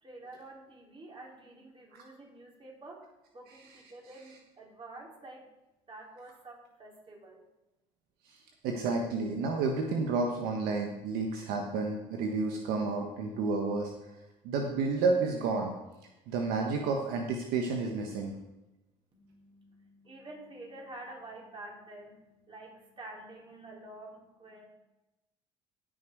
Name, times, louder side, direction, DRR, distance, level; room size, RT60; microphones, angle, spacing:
voice 1, 0.0-5.5 5.9-7.4 19.1-24.7, right 2 dB, 30° right, -1 dB, 4.1 m, -49 dB
voice 2, 8.6-13.9 14.4-15.7 16.3-18.3, right 4 dB, 75° right, 2 dB, 1.3 m, -31 dB
16.0 x 6.6 x 4.7 m, 0.99 s
hypercardioid pair, 70°, 16 cm